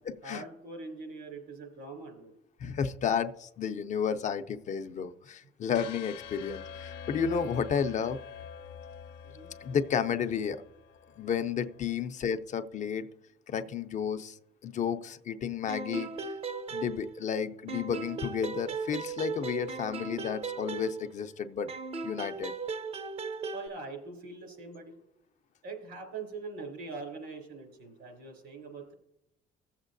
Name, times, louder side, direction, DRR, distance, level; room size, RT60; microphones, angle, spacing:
voice 1, 0.2-2.3 9.2-9.5 23.5-25.0 25.6-28.9, right 3 dB, 80° right, 3 dB, 3.6 m, -43 dB
voice 2, 2.6-8.2 9.6-10.6 11.2-13.1 13.5-16.1 16.7-21.7 22.0-22.5, left 7 dB, 45° left, 9 dB, 0.6 m, -32 dB
sound 1, 5.7-11.8, left 7 dB, 85° left, 0.7 m, -45 dB
sound 2, 15.7-17.4 17.7-21.3 21.7-23.7, right 4 dB, 35° right, 0.6 m, -37 dB
16.0 x 7.3 x 2.6 m, 0.81 s
cardioid pair, 110°, 17 cm